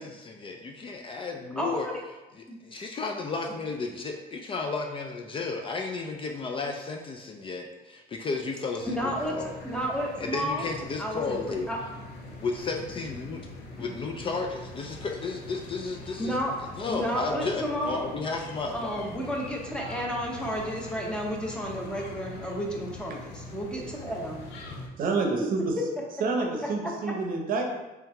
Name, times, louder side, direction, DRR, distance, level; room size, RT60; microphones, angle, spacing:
voice 1, 0.0-1.9 2.3-9.5 10.2-11.7 12.4-13.4 13.7-18.9, left 4 dB, 30° left, 2 dB, 0.4 m, -33 dB
voice 2, 1.6-2.0 2.5-2.6 8.9-10.7 11.0-11.4 11.7-11.8 16.2-16.5 16.9-18.1 18.7-24.4, equal, 5° left, -2 dB, 0.7 m, -32 dB
sound 1, 8.8-24.9, left 2 dB, 75° left, 0.7 m, -43 dB
voice 3, 25.0-25.7 26.2-27.6, right 3 dB, 55° right, 1 dB, 0.7 m, -28 dB
3.3 x 3.0 x 3.4 m, 1.1 s
cardioid pair, 110°, 17 cm